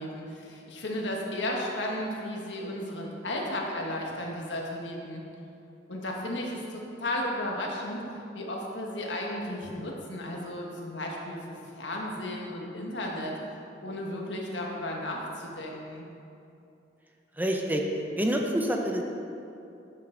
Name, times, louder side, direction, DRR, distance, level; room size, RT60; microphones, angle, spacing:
voice 1, 0.0-5.2 5.9-8.0 8.3-13.3 13.8-16.1, left 1 dB, 85° left, -1 dB, 1.5 m, -34 dB
voice 2, 17.4-17.8 18.1-19.0, right 1 dB, 10° right, 1 dB, 0.7 m, -27 dB
12.0 x 6.7 x 3.9 m, 2.7 s
head